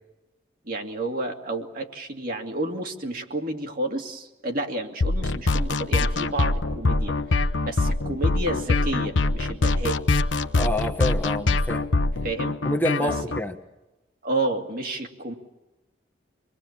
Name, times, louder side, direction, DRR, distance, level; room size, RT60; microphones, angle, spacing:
voice 1, 0.6-10.0 12.2-12.6 13.0-13.1 14.2-15.3, right 2 dB, 50° right, 3 dB, 2.6 m, -30 dB
sound 1, 5.0-13.4, left 2 dB, 80° left, 1.0 m, -23 dB
voice 2, 10.5-11.8 12.6-13.5, left 1 dB, 10° left, 4 dB, 1.3 m, -27 dB
26.5 x 21.5 x 7.4 m, 1.0 s
head